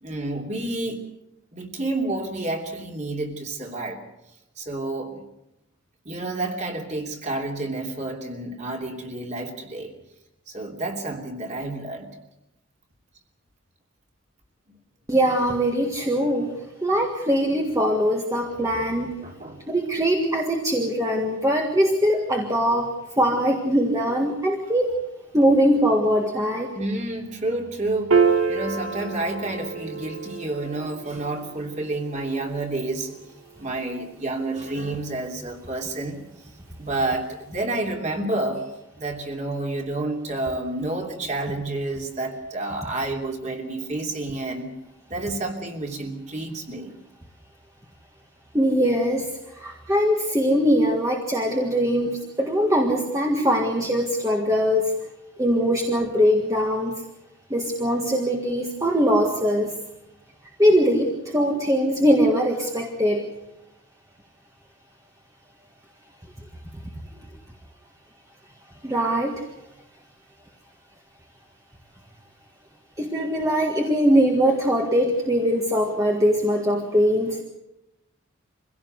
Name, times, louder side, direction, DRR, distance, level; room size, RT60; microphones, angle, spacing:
voice 1, 0.0-1.0 1.5-4.0 4.6-5.2 6.0-9.9 10.5-12.1 14.7-14.8 19.2-19.6 26.7-28.1 28.5-33.1 33.6-36.2 36.8-38.7 39.0-44.7 45.1-46.9, right 2 dB, 35° right, 2 dB, 3.1 m, -29 dB
voice 2, 15.1-16.6 16.8-19.1 19.7-22.9 23.2-25.0 25.3-26.7 48.5-49.3 49.6-55.0 55.4-56.9 57.5-59.7 60.6-63.2 68.8-69.4 73.0-77.4, equal, 15° right, 1 dB, 1.7 m, -21 dB
Piano, 28.1-34.7, right 5 dB, 90° right, 1.5 m, -28 dB
24.0 x 16.5 x 8.0 m, 0.89 s
head